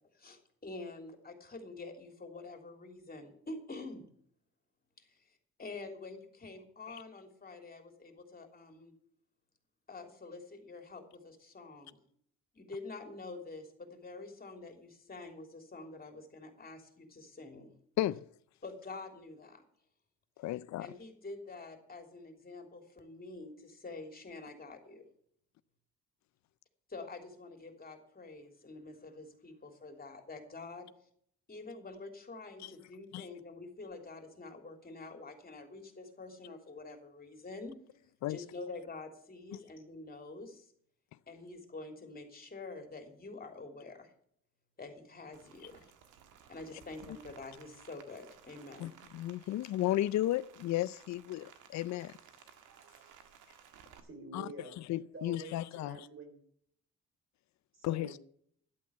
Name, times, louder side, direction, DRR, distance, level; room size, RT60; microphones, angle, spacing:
voice 1, 0.1-4.1 5.0-8.9 9.9-12.0 12.5-17.7 18.6-19.6 20.8-25.0 26.9-30.9 31.5-37.7 38.3-40.7 41.3-44.1 44.8-45.8 46.5-48.9, left 3 dB, 30° left, 3.3 m, -47 dB
voice 2, 20.4-20.9 32.6-32.7 33.1-33.3 38.2-38.4 39.5-39.6 48.8-52.1 54.3-56.1 57.8-58.2, left 14 dB, 65° left, 0.5 m, -34 dB
Rain, 45.3-54.0, right 8 dB, 90° right, 1.6 m, -58 dB
voice 3, 54.0-54.7 55.1-56.4 57.8-58.2, right 3 dB, 45° right, 3.7 m, -48 dB
12.0 x 8.5 x 7.0 m
cardioid pair, 90°, 30 cm